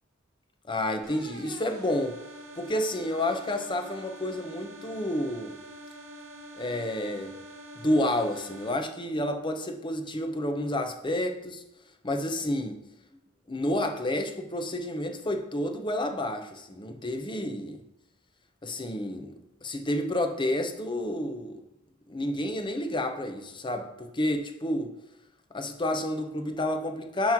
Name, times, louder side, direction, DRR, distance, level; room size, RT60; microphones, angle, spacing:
voice 1, 0.7-2.2 2.5-5.6 6.5-7.3 7.7-11.6 12.0-12.8 13.5-17.8 18.6-21.6 22.1-25.0 25.5-27.3, left 1 dB, 25° left, 5 dB, 0.7 m, -30 dB
sound 1, 1.0-8.7, right 1 dB, 80° right, 2.3 m, -46 dB
9.3 x 3.1 x 5.9 m, 0.89 s
head